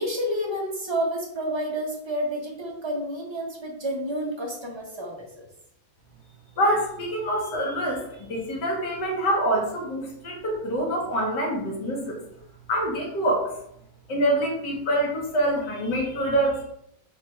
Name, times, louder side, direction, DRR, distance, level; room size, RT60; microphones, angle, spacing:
voice 1, 0.0-5.5, equal, 35° right, -2 dB, 0.4 m, -30 dB
voice 2, 6.6-12.2 12.7-13.5 14.1-16.6, right 1 dB, 70° left, -1 dB, 1.7 m, -25 dB
4.9 x 2.5 x 4.3 m, 0.74 s
omnidirectional pair, 2.0 m